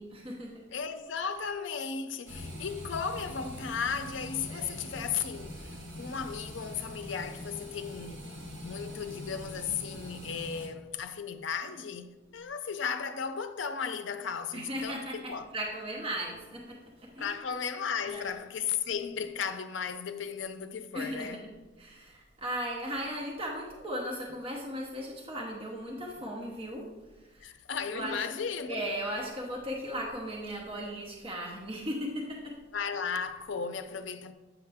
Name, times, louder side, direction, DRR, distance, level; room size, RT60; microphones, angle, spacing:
voice 1, 0.0-0.5 4.5-4.9 14.5-17.4 18.1-18.4 20.9-21.4 21.8-26.9 27.1-27.5 27.9-28.3 28.7-32.6, equal, 25° right, 0.9 m, -37 dB
voice 2, 0.7-8.3 8.6-15.5 17.2-21.4 27.4-28.9 32.7-34.3, left 6 dB, 70° left, 0.5 m, -35 dB
sound 1, 2.3-10.7, equal, 75° right, 1.9 m, -43 dB
8.5 x 5.7 x 3.5 m
head